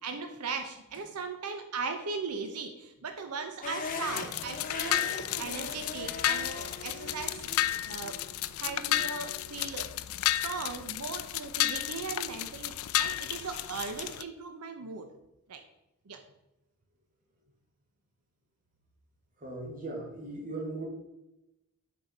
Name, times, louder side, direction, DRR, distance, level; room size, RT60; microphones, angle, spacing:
voice 1, 0.0-5.0 5.4-7.5 7.9-8.2 8.6-9.9 10.3-15.1 15.5-15.6 16.1-16.2, right 4 dB, 90° right, 6 dB, 0.7 m, -38 dB
sound 1, 3.6-9.7, left 3 dB, 40° left, 0.9 m, -41 dB
sound 2, 3.8-14.2, left 13 dB, 65° left, 0.4 m, -33 dB
voice 2, 19.4-20.9, right 2 dB, 35° right, 0 dB, 1.9 m, -38 dB
7.4 x 4.6 x 5.2 m, 0.94 s
head